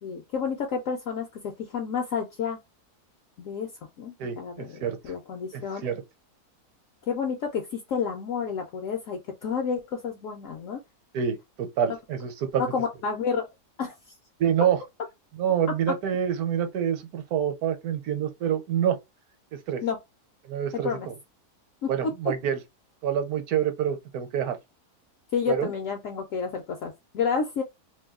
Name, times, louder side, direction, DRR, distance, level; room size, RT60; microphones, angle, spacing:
voice 1, 0.0-2.6 3.4-3.7 4.0-5.9 7.1-10.8 12.6-13.5 13.8-13.9 19.8-20.0 20.8-21.1 21.8-21.9 25.3-27.6, left 6 dB, 65° left, 0.9 m, -30 dB
voice 2, 4.2-5.0 5.5-6.0 11.1-12.6 14.4-14.8 15.4-19.0 19.7-19.8 20.5-21.1 21.9-22.6 23.0-24.6 25.5-25.7, right 9 dB, 75° right, 1.1 m, -27 dB
2.7 x 2.2 x 3.5 m
omnidirectional pair, 1.7 m